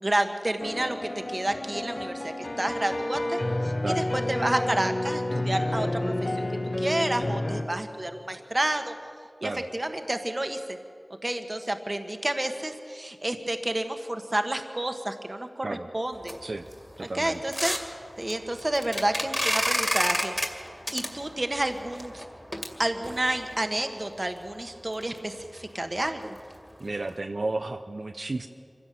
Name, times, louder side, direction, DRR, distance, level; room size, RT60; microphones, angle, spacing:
voice 1, 0.0-6.4 6.8-8.9 9.4-10.8 11.2-15.7 15.9-16.4 17.0-17.8 18.2-20.6 20.9-22.2 22.8-26.4, right 1 dB, 35° right, 6 dB, 1.4 m, -30 dB
sound 1, 0.6-7.6, left 1 dB, 50° left, 1.6 m, -30 dB
sound 2, 16.2-23.6 24.2-24.3 24.6-24.7 25.0-25.2 25.5-25.6 26.0-26.2 26.5-26.6 27.1-27.2, equal, 5° left, 2.3 m, -31 dB
voice 2, 17.0-17.4 26.8-28.5, right 2 dB, 70° right, 5 dB, 0.8 m, -32 dB
24.5 x 16.0 x 7.7 m, 2.3 s
wide cardioid pair, 60°, 0 cm